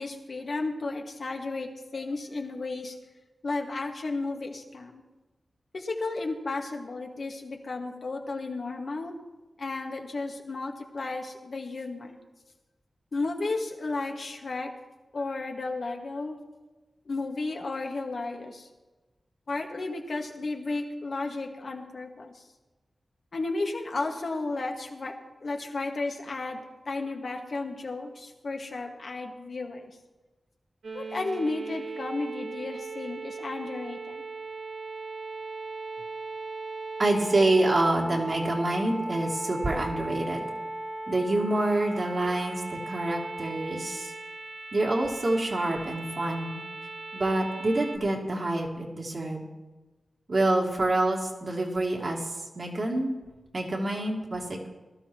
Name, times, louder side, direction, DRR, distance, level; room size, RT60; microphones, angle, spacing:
voice 1, 0.0-3.0 3.4-5.0 5.7-9.1 9.6-12.2 13.1-14.7 15.1-16.4 17.1-18.7 19.5-22.4 23.3-25.1 25.4-29.9 30.9-34.2, left 3 dB, 65° left, 2 dB, 1.8 m, -33 dB
sound 1, 30.8-48.0, right 3 dB, 85° right, 1.7 m, -38 dB
voice 2, 37.0-40.4 41.1-44.1 44.7-46.6 47.1-49.4 50.3-53.2 53.5-54.7, right 2 dB, 60° right, -2 dB, 3.0 m, -27 dB
20.0 x 13.0 x 3.1 m, 1.2 s
cardioid pair, 50°, 0 cm